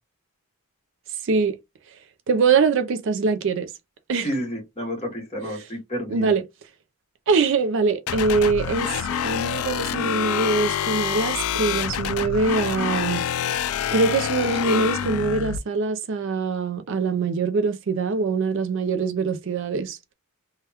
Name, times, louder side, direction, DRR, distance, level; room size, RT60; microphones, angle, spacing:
voice 1, 1.2-1.6 2.3-3.7 4.1-4.3 5.4-5.6 6.1-6.4 7.3-13.2 13.9-20.0, right 4 dB, 55° right, 0.4 m, -23 dB
voice 2, 4.2-6.3, equal, 30° left, 1.5 m, -30 dB
sound 1, 8.1-15.6, left 8 dB, 70° left, 0.3 m, -26 dB
3.4 x 2.2 x 2.8 m
head